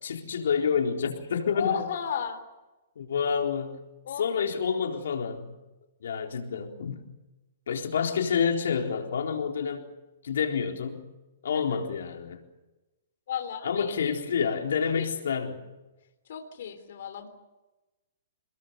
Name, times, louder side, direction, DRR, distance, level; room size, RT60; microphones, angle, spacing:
voice 1, 0.0-1.9 3.0-3.8 4.2-5.5 6.0-7.0 7.7-9.9 10.2-11.1 11.4-12.4 13.6-15.7, left 6 dB, 80° left, 3 dB, 4.0 m, -28 dB
voice 2, 1.5-2.4 4.1-4.2 11.5-11.6 13.3-14.1 14.9-15.1 16.3-17.3, left 8 dB, 60° left, 5 dB, 3.6 m, -33 dB
28.0 x 21.5 x 6.9 m, 1.1 s
hypercardioid pair, 165°, 0 cm